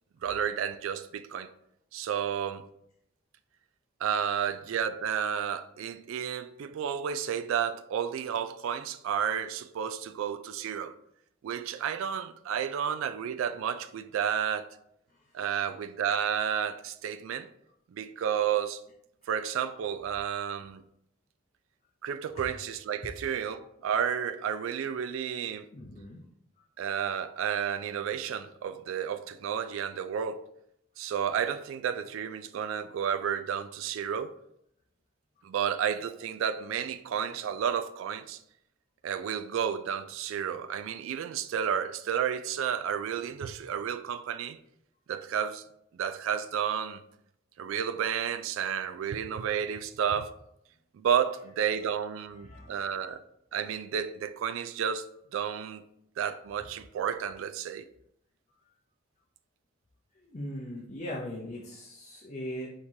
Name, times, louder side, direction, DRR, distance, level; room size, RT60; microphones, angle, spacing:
voice 1, 0.2-1.5 1.9-2.7 4.0-10.9 11.4-14.7 15.3-17.5 17.9-18.8 19.3-20.8 22.0-25.7 26.8-30.4 31.0-34.3 35.4-38.4 39.0-44.6 45.1-45.6 46.0-47.0 47.6-50.3 50.9-53.2 53.5-55.1 55.3-55.8 56.2-57.8, right 8 dB, 75° right, 0.3 m, -31 dB
voice 2, 25.7-26.2 52.4-52.8 60.2-62.7, equal, 35° left, 0.5 m, -39 dB
4.5 x 3.6 x 2.7 m
head